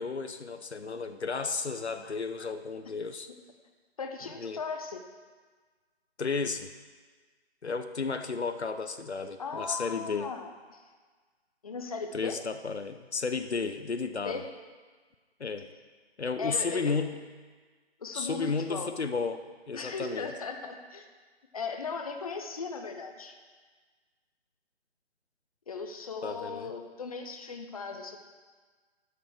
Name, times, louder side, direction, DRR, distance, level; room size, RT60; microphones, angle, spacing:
voice 1, 0.0-3.3 4.4-4.6 6.2-6.7 7.6-10.3 12.1-14.4 15.4-15.7 16.2-17.1 18.1-20.3 26.2-26.7, left 4 dB, 80° left, 9 dB, 0.8 m, -33 dB
voice 2, 4.0-5.0 9.4-10.8 11.6-12.4 14.2-14.5 16.4-17.0 18.0-18.9 19.7-21.1 21.5-23.3 25.7-28.2, left 4 dB, 35° left, 5 dB, 0.8 m, -37 dB
8.8 x 6.9 x 6.6 m, 1.5 s
figure-of-eight pair, 150°, 32 cm